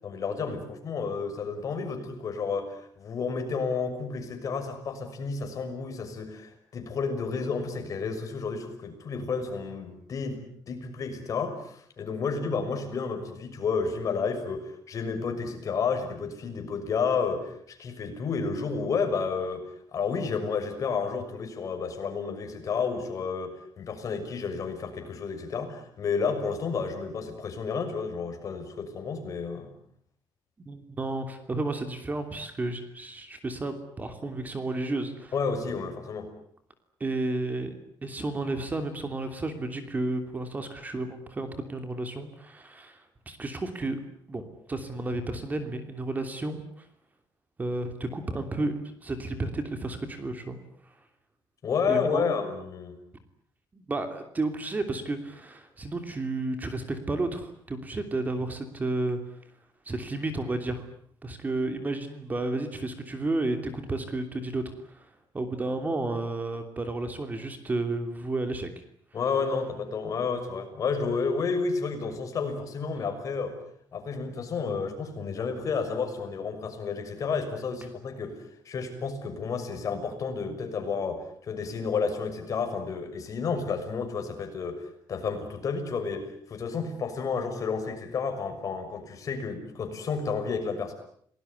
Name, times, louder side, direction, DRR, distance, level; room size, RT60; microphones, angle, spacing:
voice 1, 0.0-10.4 10.7-19.6 19.9-29.7 35.3-36.3 51.6-53.0 69.1-73.6 73.9-78.4 78.6-90.9, left 5 dB, 45° left, 6 dB, 6.3 m, -31 dB
voice 2, 30.7-35.3 37.0-44.0 44.3-46.9 47.6-50.6 50.8-50.9 51.8-52.3 53.7-59.2 59.8-60.9 61.2-68.7, right 2 dB, 20° right, 8 dB, 3.0 m, -32 dB
29.5 x 19.5 x 9.5 m, 0.64 s
cardioid pair, 145°, 8 cm